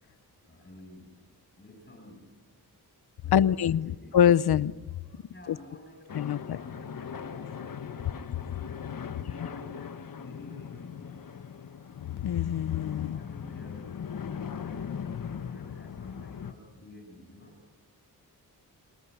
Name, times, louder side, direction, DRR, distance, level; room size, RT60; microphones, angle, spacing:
voice 1, 0.4-1.2 1.5-2.3 2.6-2.7 3.2-4.2 5.2-7.8 9.1-11.1 12.9-14.0 14.5-17.6, left 1 dB, 30° left, 7.9 m, -51 dB
voice 2, 3.3-4.7 5.5-5.6 6.1-6.6 12.2-13.2, left 9 dB, 80° left, 0.8 m, -24 dB
sound 1, 6.1-16.5, left 7 dB, 60° left, 1.2 m, -39 dB
29.5 x 20.0 x 9.6 m
cardioid pair, 85°, 38 cm